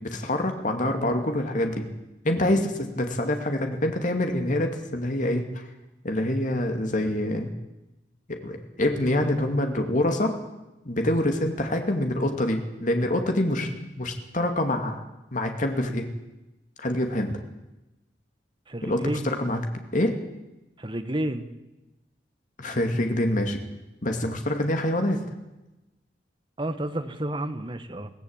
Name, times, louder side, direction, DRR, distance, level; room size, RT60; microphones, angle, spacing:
voice 1, 0.0-1.9 2.2-5.7 6.0-7.5 8.3-10.3 10.8-15.0 15.3-16.0 16.8-17.4 18.8-19.6 19.9-20.2 22.6-23.6 24.0-25.2, left 1 dB, 45° left, 4 dB, 2.5 m, -26 dB
voice 2, 18.7-19.2 20.8-21.5 26.6-28.1, right 1 dB, 30° right, 9 dB, 1.6 m, -30 dB
22.5 x 17.0 x 9.0 m, 1.0 s
head